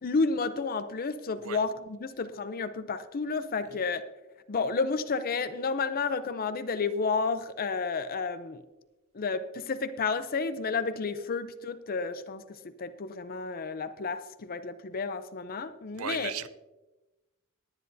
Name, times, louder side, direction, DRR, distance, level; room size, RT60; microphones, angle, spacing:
voice 1, 0.0-4.0 4.5-8.6 9.1-16.3, left 4 dB, 45° left, 0.5 m, -31 dB
voice 2, 16.0-16.5, right 8 dB, 70° right, 0.6 m, -35 dB
19.5 x 9.9 x 2.7 m
head